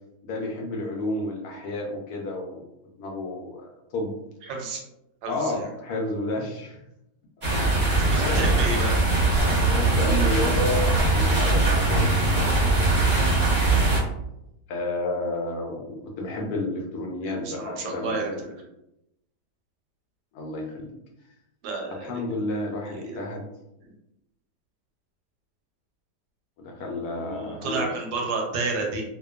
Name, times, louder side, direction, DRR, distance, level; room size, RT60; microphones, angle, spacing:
voice 1, 0.2-2.7 3.0-4.1 5.3-6.8 7.4-7.5 7.9-8.5 9.5-12.1 13.5-13.7 14.7-18.5 20.3-20.9 21.9-23.5 26.6-27.9, left 2 dB, 70° left, 1 dB, 1.0 m, -31 dB
voice 2, 4.4-4.8 5.2-5.7 7.9-8.9 17.2-18.5 21.6-22.2 22.9-23.2 26.9-29.0, right 3 dB, 80° right, 1 dB, 1.1 m, -31 dB
sound 1, 7.4-14.0, right 2 dB, 35° right, 0.7 m, -21 dB
2.8 x 2.1 x 2.3 m, 0.86 s
omnidirectional pair, 1.8 m